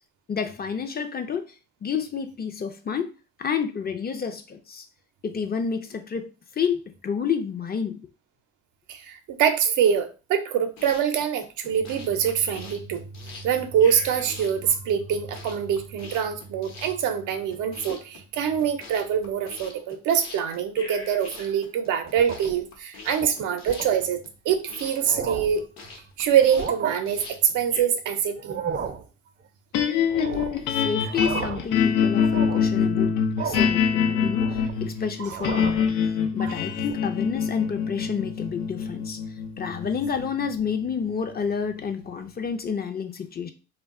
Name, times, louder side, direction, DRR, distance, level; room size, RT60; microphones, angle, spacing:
voice 1, 0.3-1.5 1.8-3.1 3.4-4.9 5.2-8.1 30.7-33.2 33.4-35.8 36.3-39.2 39.6-43.5, left 6 dB, 30° left, 7 dB, 0.5 m, -29 dB
voice 2, 8.9-24.2 24.4-25.6 26.2-28.6 36.4-36.6, right 8 dB, 90° right, 7 dB, 0.6 m, -24 dB
sound 1, 10.6-27.8, left 4 dB, 60° left, 0.8 m, -44 dB
sound 2, 22.0-22.6 23.1-23.3 23.7-23.9 24.5-24.6 24.9-25.6 26.4-26.9 28.4-29.0 30.1-30.7 31.0-31.7 32.2-32.7 33.4-33.8 34.2-34.9 35.2-35.9, right 6 dB, 35° right, 0.5 m, -33 dB
sound 3, 29.7-42.0, left 7 dB, 90° left, 0.5 m, -25 dB
2.2 x 2.2 x 3.5 m, 0.32 s
cardioid pair, 90°, 30 cm